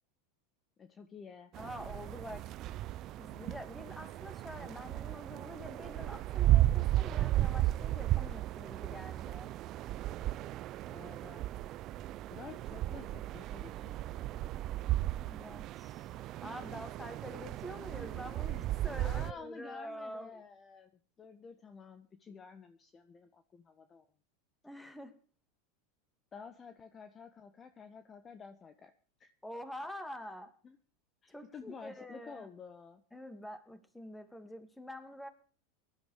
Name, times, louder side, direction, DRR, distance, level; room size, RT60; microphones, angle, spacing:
voice 1, 0.8-1.5 10.9-11.4 12.3-14.5 19.0-20.9 21.2-24.0 26.3-28.9 29.2-29.3 30.6-30.8 31.2-33.0, left 5 dB, 25° left, 9 dB, 1.5 m, -51 dB
sound 1, 1.5-19.3, right 14 dB, 45° right, 0.7 m, -34 dB
voice 2, 1.6-2.5 3.2-9.5 15.1-16.1 16.4-20.4 24.6-25.1 29.4-30.5 31.3-32.5 33.1-35.3, equal, 5° left, 9 dB, 2.8 m, -46 dB
18.5 x 12.0 x 5.1 m, 0.41 s
hypercardioid pair, 100°, 0 cm